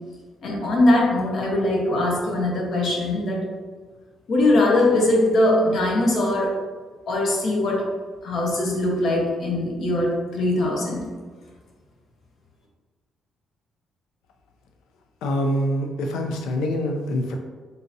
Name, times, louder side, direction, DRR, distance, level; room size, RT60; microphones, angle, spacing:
voice 1, 0.4-3.5 4.3-6.6 7.1-7.9 8.2-11.0, left 1 dB, 65° left, -2 dB, 0.9 m, -21 dB
voice 2, 15.2-17.4, equal, 85° left, 3 dB, 0.3 m, -25 dB
3.7 x 2.7 x 2.6 m, 1.5 s
cardioid pair, 90°, 0 cm